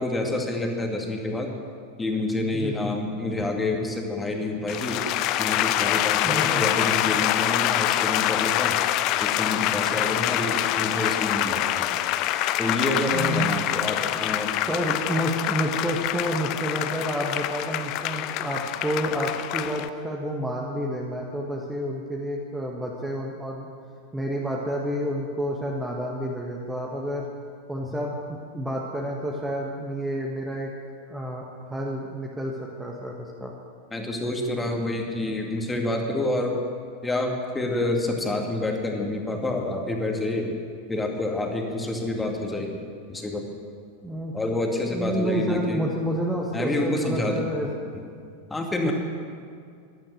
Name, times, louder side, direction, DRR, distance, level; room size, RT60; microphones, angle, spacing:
voice 1, 0.0-1.5 2.0-5.0 5.4-8.8 9.2-11.9 12.6-14.5 27.8-28.0 33.9-36.6 37.0-40.5 40.9-42.7 43.1-43.5 44.3-45.8 46.5-47.5 48.5-48.9, left 2 dB, 10° left, 2 dB, 2.1 m, -28 dB
voice 2, 2.5-2.9 6.2-6.6 13.1-13.5 14.7-23.7 24.1-27.2 27.7-28.1 28.5-30.7 31.1-33.5 44.0-44.3 44.8-47.7 48.8-48.9, equal, 10° right, -1 dB, 1.5 m, -29 dB
sound 1, 4.7-19.9, left 13 dB, 40° left, 0.5 m, -25 dB
15.5 x 12.0 x 6.5 m, 2.3 s
figure-of-eight pair, 90°, 0 cm